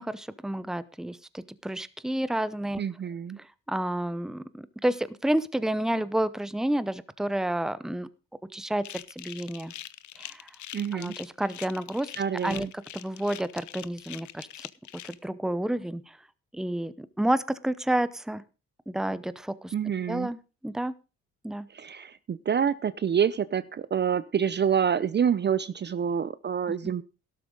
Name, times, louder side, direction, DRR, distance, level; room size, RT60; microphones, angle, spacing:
voice 1, 0.0-2.8 3.7-8.1 8.5-9.7 10.2-10.5 10.9-12.1 12.4-14.7 15.0-16.2 16.5-18.4 18.9-19.7 20.1-20.4 20.6-20.9 21.4-21.7, right 1 dB, ahead, 16 dB, 0.7 m, -30 dB
voice 2, 2.8-3.4 10.7-11.1 12.2-12.7 19.7-20.3 21.7-27.0, right 8 dB, 35° right, 16 dB, 0.6 m, -27 dB
sound 1, 8.8-15.1, left 13 dB, 70° left, 0.8 m, -43 dB
12.5 x 12.0 x 3.8 m, 0.32 s
cardioid pair, 90°, 30 cm